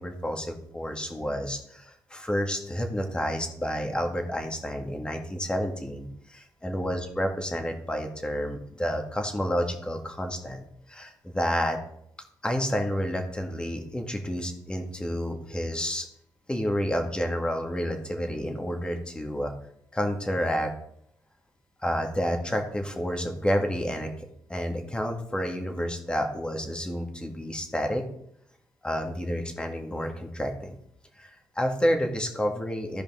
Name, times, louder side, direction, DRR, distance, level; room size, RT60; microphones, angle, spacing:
voice 1, 0.0-11.8 12.4-16.1 16.5-19.5 19.9-20.7 21.8-28.0 28.8-30.8 31.2-33.0, equal, 15° left, 4 dB, 1.8 m, -30 dB
15.0 x 5.1 x 3.7 m, 0.70 s
cardioid pair, 95°, 7 cm